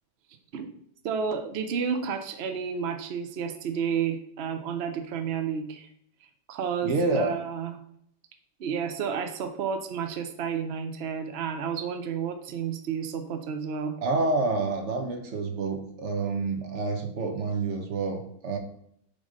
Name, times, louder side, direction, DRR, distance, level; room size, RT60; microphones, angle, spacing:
voice 1, 1.0-5.9 6.2-7.8 8.6-14.0, right 7 dB, 75° right, 7 dB, 0.5 m, -31 dB
voice 2, 6.8-7.3 14.0-18.6, right 3 dB, 50° right, 5 dB, 1.1 m, -28 dB
6.8 x 3.7 x 5.1 m, 0.70 s
omnidirectional pair, 1.9 m